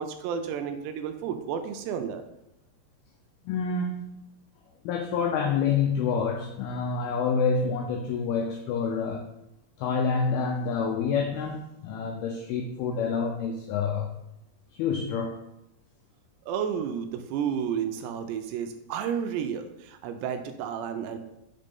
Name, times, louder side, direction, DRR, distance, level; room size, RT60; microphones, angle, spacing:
voice 1, 0.0-2.2 16.5-21.2, right 7 dB, 85° right, 7 dB, 2.6 m, -31 dB
voice 2, 3.5-4.0 4.9-9.3 9.8-14.1 14.7-15.4, left 5 dB, 90° left, 3 dB, 2.2 m, -27 dB
5.9 x 5.4 x 5.3 m, 0.86 s
omnidirectional pair, 5.2 m